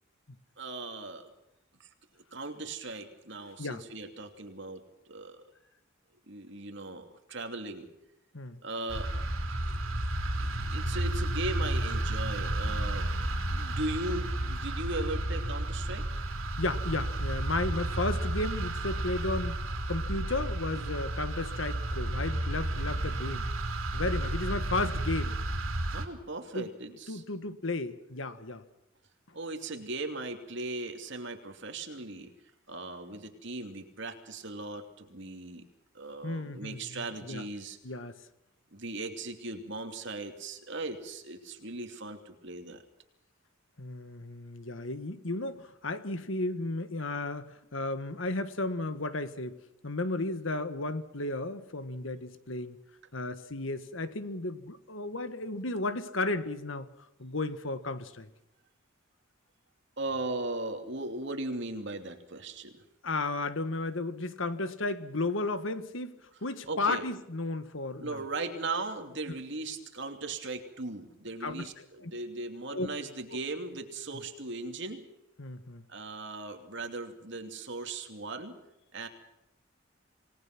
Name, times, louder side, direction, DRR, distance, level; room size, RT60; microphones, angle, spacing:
voice 1, 0.6-1.3 1.8-1.9 2.3-5.4 6.3-7.9 8.6-9.1 9.6-9.8 10.3-13.1 13.5-16.3 25.9-27.2 29.3-32.3 32.7-35.6 35.9-37.8 38.7-42.8 60.0-62.8 66.7-67.1 68.0-75.1 75.9-78.6 78.9-79.1, right 2 dB, 60° right, 5 dB, 2.8 m, -38 dB
sound 1, 8.9-26.1, right 1 dB, 80° right, 3.8 m, -32 dB
voice 2, 16.6-19.6 19.9-23.5 23.9-25.4 26.5-26.7 27.1-28.6 36.2-37.4 37.8-38.2 43.8-49.6 49.8-52.8 53.1-56.9 57.2-58.3 63.0-68.2 69.3-69.4 71.4-71.7 72.0-72.1 72.7-72.9 75.4-75.8, left 2 dB, 70° left, 11 dB, 1.6 m, -34 dB
27.5 x 19.0 x 6.1 m, 0.87 s
head